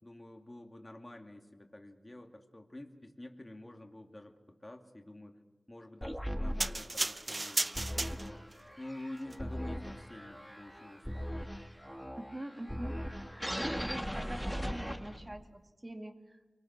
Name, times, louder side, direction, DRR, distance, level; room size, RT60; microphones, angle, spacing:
voice 1, 0.0-5.4 5.7-8.5 8.8-11.3, left 1 dB, 25° left, 3 dB, 2.4 m, -48 dB
sound 1, 6.0-15.4, equal, ahead, 1.5 m, -39 dB
sound 2, 6.6-8.6 9.2-9.4, right 2 dB, 40° right, 0.7 m, -34 dB
voice 2, 12.1-16.5, right 1 dB, 25° right, 5 dB, 2.4 m, -44 dB
24.0 x 23.5 x 6.1 m, 1.2 s
cardioid pair, 50°, 0 cm